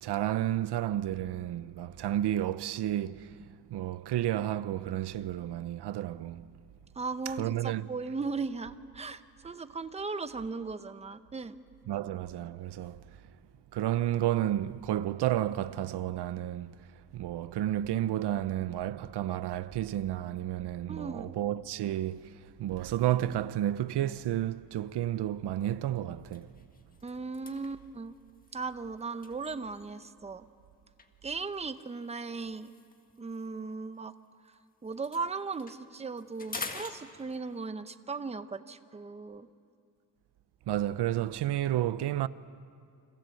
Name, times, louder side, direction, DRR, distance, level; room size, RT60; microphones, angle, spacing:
voice 1, 0.0-6.5 7.2-7.9 11.9-13.0 13.7-16.8 17.1-26.5 40.7-42.3, right 12 dB, 85° right, 0.8 m, -31 dB
voice 2, 7.0-11.6 20.9-21.4 27.0-28.1 28.5-30.5 31.2-32.7 33.2-34.1 34.4-34.5 34.8-39.5, right 4 dB, 15° right, 0.7 m, -37 dB
sound 1, 25.0-25.3 25.7-25.8 26.2-30.1 31.0-34.5 34.8-37.7, left 3 dB, 20° left, 1.6 m, -47 dB
29.5 x 25.0 x 7.8 m
wide cardioid pair, 175°, 39 cm